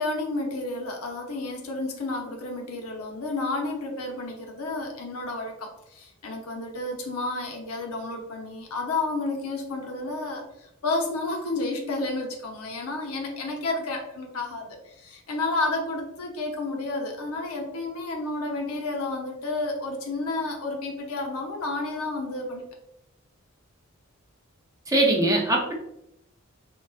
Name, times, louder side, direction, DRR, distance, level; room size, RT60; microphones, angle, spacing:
voice 1, 0.0-22.7, left 2 dB, 85° left, 2 dB, 0.7 m, -31 dB
voice 2, 24.9-25.7, right 1 dB, 15° right, 0 dB, 0.5 m, -21 dB
3.8 x 2.2 x 2.3 m, 0.82 s
head